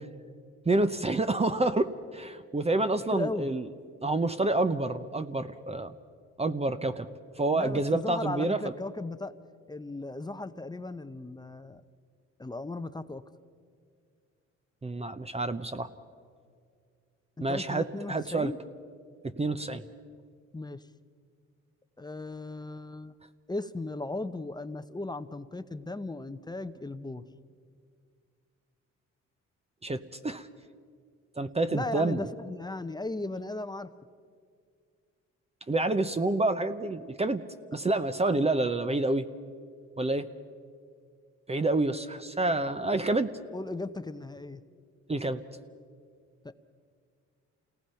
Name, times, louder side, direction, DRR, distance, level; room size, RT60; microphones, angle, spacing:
voice 1, 0.7-3.7 4.0-5.9 6.4-7.1 7.4-8.7 14.8-15.9 17.4-18.5 19.2-19.8 29.8-30.5 31.4-32.2 35.7-37.4 37.7-39.3 40.0-40.3 41.5-43.3 45.1-45.4, right 2 dB, 20° right, 10 dB, 0.8 m, -28 dB
voice 2, 3.1-3.5 7.5-9.3 9.7-11.8 12.4-13.2 17.4-18.6 20.5-20.9 22.0-23.1 23.5-27.3 31.7-33.9 42.9-43.0 43.5-44.6 46.4-46.5, left 2 dB, 15° left, 11 dB, 0.8 m, -36 dB
28.0 x 18.5 x 5.7 m, 2.2 s
cardioid pair, 90°, 30 cm